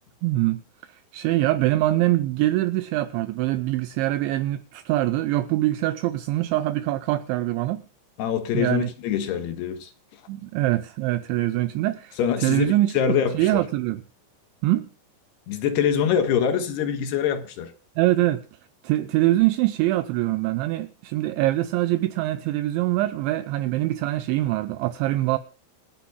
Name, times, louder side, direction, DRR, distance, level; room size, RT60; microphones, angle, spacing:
voice 1, 0.2-7.8 8.5-8.9 10.3-12.2 12.4-12.9 13.3-14.0 14.6-14.9 18.0-18.4 18.8-25.4, right 16 dB, 80° right, 2.9 m, -23 dB
voice 2, 8.2-9.9 12.2-13.6 15.5-17.7, left 8 dB, 65° left, 3.1 m, -24 dB
27.0 x 10.0 x 2.2 m
omnidirectional pair, 5.5 m